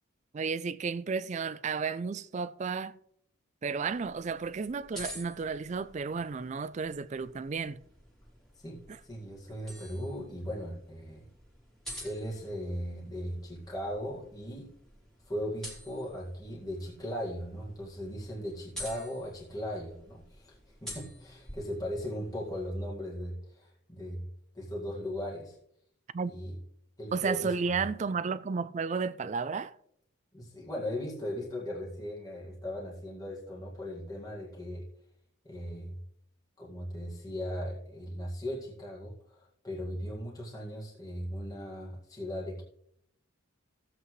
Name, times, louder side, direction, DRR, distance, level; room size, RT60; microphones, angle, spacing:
voice 1, 0.3-2.9 3.6-7.8 8.9-9.0 26.1-26.3 27.1-29.8, right 5 dB, 35° right, 0.3 m, -33 dB
sound 1, 3.8-22.7, left 1 dB, ahead, 2.6 m, -49 dB
voice 2, 8.6-11.3 12.0-14.7 15.3-24.3 24.5-25.6 26.3-26.5 27.0-27.7 30.3-34.9 35.4-36.0 36.6-42.6, equal, 15° left, 1.9 m, -38 dB
15.0 x 8.0 x 3.2 m
head